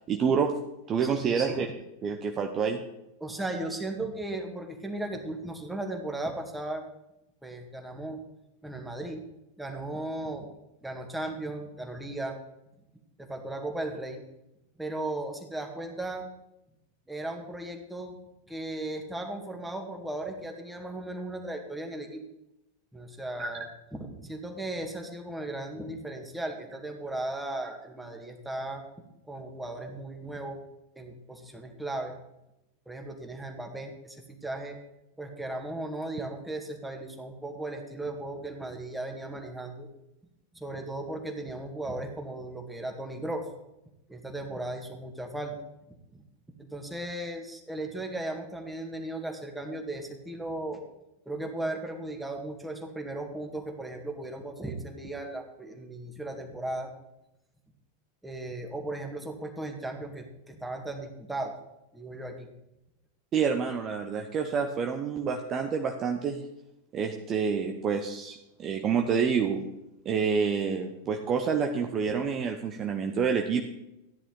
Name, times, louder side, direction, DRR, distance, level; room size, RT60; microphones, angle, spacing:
voice 1, 0.1-0.5 0.9-1.7 2.0-2.8 23.4-23.5 63.3-66.4 66.9-69.7 70.0-73.6, right 6 dB, 30° right, 4 dB, 1.0 m, -28 dB
voice 2, 1.0-1.6 3.2-6.8 7.4-8.2 8.6-9.2 9.6-10.5 10.8-12.4 13.2-14.2 14.8-16.3 17.1-18.2 18.5-22.2 22.9-28.8 29.3-30.6 30.9-32.1 32.9-34.8 35.2-39.9 40.5-43.5 44.1-45.6 45.9-46.2 46.6-50.8 51.3-56.9 58.2-61.5 61.9-62.5, right 2 dB, 5° right, 3 dB, 1.9 m, -36 dB
14.0 x 10.0 x 3.9 m, 0.90 s
figure-of-eight pair, 90°, 0 cm